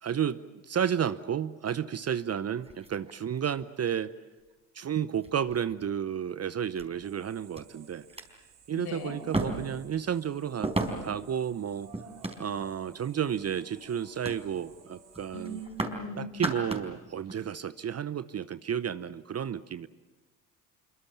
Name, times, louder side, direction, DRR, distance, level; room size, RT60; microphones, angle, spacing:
voice 1, 0.0-4.1 4.7-8.1 8.7-10.7 11.0-11.9 12.4-15.6 16.2-19.9, right 8 dB, 30° right, 15 dB, 0.8 m, -32 dB
sound 1, 2.6-3.6 4.5-4.6 5.2-5.8 6.7-6.9 7.5-7.6 8.0-8.2 9.3-9.8 10.6-11.2 11.9-12.8 13.3-13.6 14.2-14.4 14.7-14.9 15.1-16.0 16.3-16.9 17.3-17.4, right 2 dB, 15° right, 4.3 m, -34 dB
sound 2, 7.0-15.7, right 7 dB, 80° right, 5.6 m, -55 dB
voice 2, 8.7-9.2 15.3-16.3, left 1 dB, 55° left, 6 dB, 5.5 m, -39 dB
25.5 x 24.0 x 7.2 m, 1.2 s
hypercardioid pair, 65°, 47 cm